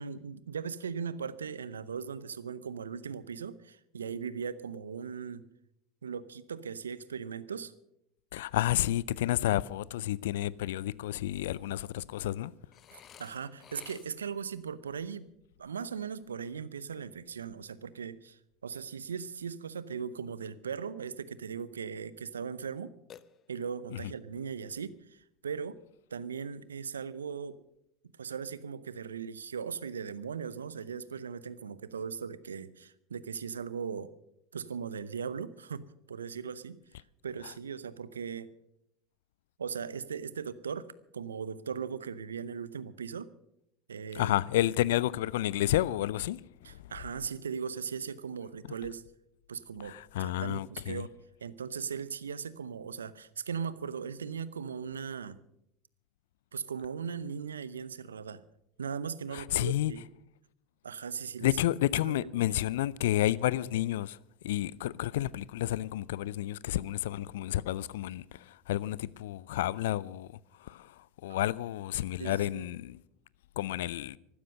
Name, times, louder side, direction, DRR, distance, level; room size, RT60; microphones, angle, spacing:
voice 1, 0.0-5.4 6.0-7.7 12.9-15.3 15.6-22.9 23.5-25.8 26.1-27.6 28.2-34.1 34.5-36.8 37.2-38.5 39.6-40.9 41.1-43.3 43.9-44.4 44.6-44.7 46.6-49.0 49.5-51.1 51.4-55.4 56.5-58.4 58.8-60.0 60.8-61.5 62.0-62.6 71.3-71.5 72.2-72.7, right 6 dB, 85° right, 0.7 m, -38 dB
voice 2, 8.3-12.5 23.9-24.1 37.4-37.5 44.1-46.9 49.8-51.0 59.3-59.9 61.4-64.2 64.4-70.3 70.6-73.0 73.6-74.2, left 14 dB, 70° left, 0.5 m, -31 dB
Burping eructation, 12.7-14.4 23.1-23.9, left 9 dB, 40° left, 0.8 m, -54 dB
15.0 x 13.0 x 6.4 m
hypercardioid pair, 75°, 0 cm